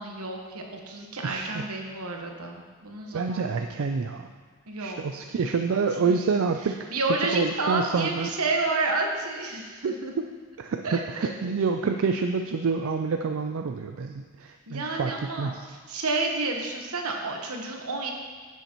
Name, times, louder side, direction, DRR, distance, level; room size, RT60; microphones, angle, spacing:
voice 1, 0.0-3.5 4.7-5.0 5.3-5.4 5.7-6.5 6.9-10.1 10.8-11.3 14.7-18.1, right 3 dB, 80° right, 2 dB, 1.2 m, -30 dB
voice 2, 1.2-1.7 3.1-4.3 4.8-6.9 7.3-8.3 9.8-10.3 10.6-15.1 15.4-15.7, right 5 dB, 60° right, 5 dB, 0.4 m, -27 dB
10.0 x 8.1 x 3.0 m, 1.5 s
head